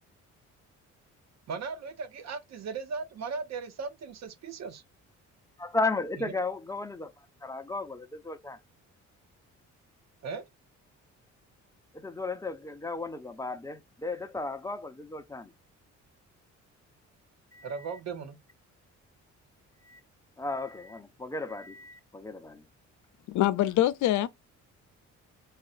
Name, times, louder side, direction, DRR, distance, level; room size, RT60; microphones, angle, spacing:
voice 1, 1.5-4.8 6.2-6.3 10.2-10.5 17.6-18.4, right 5 dB, 60° right, 0.8 m, -37 dB
voice 2, 5.6-7.1 7.4-8.6 11.9-15.5 17.5-18.0 19.8-20.0 20.4-22.6, left 3 dB, 10° left, 0.5 m, -35 dB
voice 3, 23.3-24.3, left 13 dB, 75° left, 0.5 m, -24 dB
4.2 x 2.3 x 2.4 m
cardioid pair, 90°, 30 cm